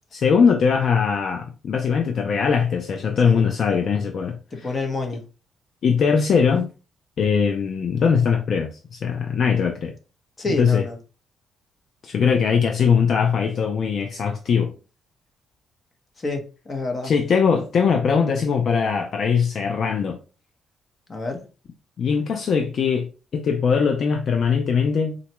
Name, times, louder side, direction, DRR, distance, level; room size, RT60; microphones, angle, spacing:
voice 1, 0.1-4.8 5.8-6.7 7.2-9.9 10.6-10.8 12.0-14.7 17.0-20.2 22.0-25.2, left 6 dB, 60° left, 0.4 m, -21 dB
voice 2, 4.5-5.2 10.4-10.9 16.2-17.1 21.1-21.4, left 2 dB, 35° left, 0.9 m, -28 dB
3.8 x 2.2 x 2.9 m
cardioid pair, 90°, 0 cm